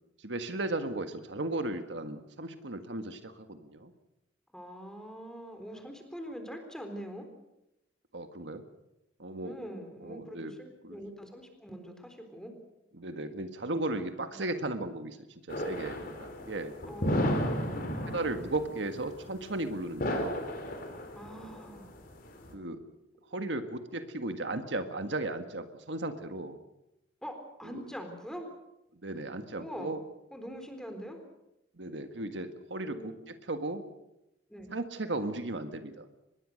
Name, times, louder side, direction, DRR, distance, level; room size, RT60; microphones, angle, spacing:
voice 1, 0.2-3.9 8.1-8.6 9.2-9.6 10.0-10.5 10.8-11.0 12.9-15.2 15.5-16.7 18.1-20.4 22.5-22.8 23.3-26.6 27.6-27.8 29.0-30.0 31.8-33.8 34.7-36.1, right 2 dB, 80° right, 8 dB, 1.7 m, -36 dB
voice 2, 4.5-7.3 9.4-12.5 14.3-14.4 16.9-17.9 21.1-21.9 27.2-28.5 29.5-30.0 30.3-31.2 32.8-33.2 34.5-34.7, equal, 5° left, 5 dB, 4.0 m, -43 dB
sound 1, 15.5-22.5, equal, 55° left, 4.0 m, -34 dB
24.0 x 21.0 x 6.5 m, 0.90 s
head